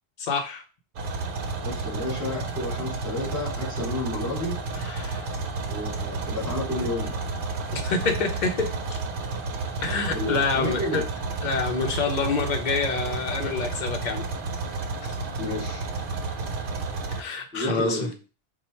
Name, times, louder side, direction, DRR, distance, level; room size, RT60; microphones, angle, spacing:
voice 1, 0.2-0.6 4.8-5.3 7.7-9.0 9.8-11.0 11.4-14.3 15.0-15.2 17.2-18.1, left 4 dB, 50° left, 5 dB, 0.7 m, -27 dB
sound 1, 1.0-17.2, right 3 dB, 60° right, 0.8 m, -31 dB
voice 2, 1.6-4.6 5.7-7.2 9.9-11.0 15.4-15.9 17.5-18.1, left 1 dB, 5° left, -6 dB, 2.3 m, -31 dB
4.3 x 2.3 x 4.2 m, 0.35 s
omnidirectional pair, 1.1 m